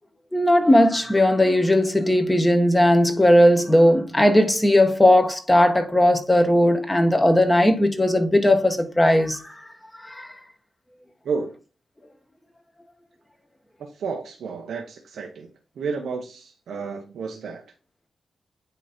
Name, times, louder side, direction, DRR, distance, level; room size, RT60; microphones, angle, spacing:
voice 1, 0.3-9.4 10.1-10.3, left 1 dB, 10° left, 1.5 m, -17 dB
voice 2, 14.0-15.5 15.8-17.6, right 5 dB, 85° right, 1.2 m, -31 dB
9.1 x 3.3 x 4.3 m
cardioid pair, 90°, 0 cm